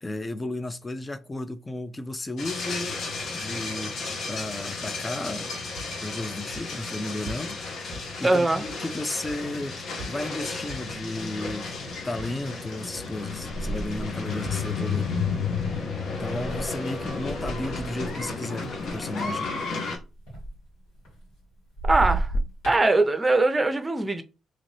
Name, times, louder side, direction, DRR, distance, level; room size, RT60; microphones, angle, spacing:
voice 1, 0.0-3.0 3.3-5.5 6.0-7.6 8.2-9.8 10.1-11.8 12.0-15.1 16.2-19.5, left 2 dB, 25° left, 0.4 m, -34 dB
sound 1, 2.4-20.0, left 4 dB, 65° left, 0.9 m, -33 dB
sound 2, 5.5-8.9 9.2-11.9 12.2-13.3 13.7-15.8, right 1 dB, 80° right, 0.4 m, -44 dB
voice 2, 8.2-8.7 21.8-22.3 22.7-24.2, right 2 dB, 25° right, 0.7 m, -21 dB
sound 3, 13.3-18.3 18.6-21.4 21.7-22.9, right 2 dB, 80° left, 1.8 m, -33 dB
2.9 x 2.5 x 3.2 m
hypercardioid pair, 50°, 0 cm